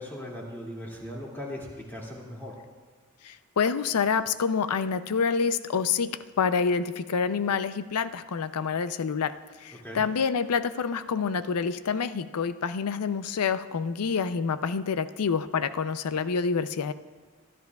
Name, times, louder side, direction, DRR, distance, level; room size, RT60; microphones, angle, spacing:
voice 1, 0.0-2.5 9.8-10.0, left 1 dB, 10° left, -4 dB, 2.3 m, -38 dB
voice 2, 3.2-9.3 9.6-16.9, left 5 dB, 90° left, 13 dB, 0.5 m, -27 dB
23.0 x 12.0 x 2.3 m, 1.5 s
head